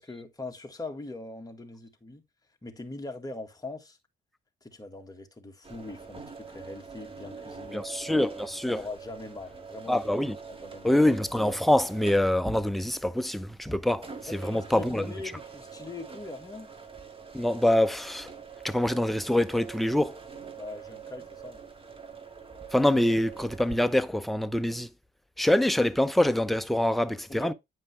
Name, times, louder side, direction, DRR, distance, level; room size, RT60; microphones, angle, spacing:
voice 1, 0.0-2.2 2.6-4.0 4.6-7.9 8.7-10.1 10.6-10.9 14.3-16.7 20.5-21.6 27.3-27.5, left 2 dB, 20° left, 1.8 m, -41 dB
sound 1, 5.6-23.8, right 5 dB, 25° right, 1.9 m, -45 dB
voice 2, 7.7-8.8 9.9-10.4 10.8-15.1 17.3-18.3 18.6-20.2 22.7-24.9 25.4-27.5, left 1 dB, ahead, 0.6 m, -25 dB
9.3 x 5.3 x 3.4 m
cardioid pair, 90°, 20 cm